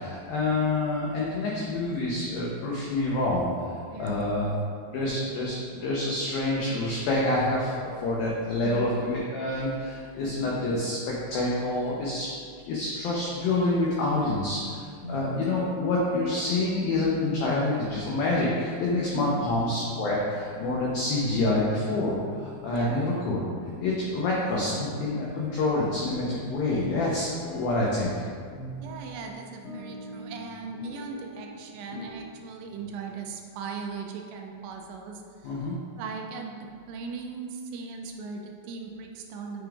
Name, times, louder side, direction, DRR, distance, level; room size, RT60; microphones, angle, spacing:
voice 1, 0.0-4.5 4.9-11.0 11.3-12.3 12.7-23.4 23.8-28.2 35.4-35.8, left 2 dB, 85° left, -5 dB, 2.0 m, -27 dB
voice 2, 3.9-4.3 8.6-9.0 10.2-10.5 15.1-15.2 19.1-19.5 22.7-23.1 28.8-39.7, right 5 dB, 80° right, 2 dB, 2.8 m, -39 dB
sound 1, 15.0-33.0, left 1 dB, 60° left, 1.7 m, -42 dB
9.3 x 5.1 x 2.4 m, 2.1 s
omnidirectional pair, 5.3 m